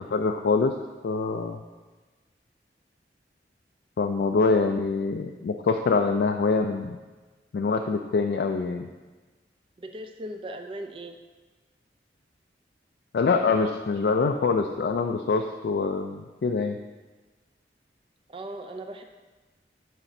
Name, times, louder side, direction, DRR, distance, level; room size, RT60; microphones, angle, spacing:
voice 1, 0.1-0.7 1.0-1.6 4.0-7.0 7.5-8.9 13.1-16.8, left 4 dB, 65° left, 4 dB, 0.3 m, -25 dB
voice 2, 9.8-11.2 18.3-19.0, right 1 dB, 30° right, 6 dB, 0.4 m, -38 dB
9.9 x 4.1 x 2.7 m, 1.3 s
head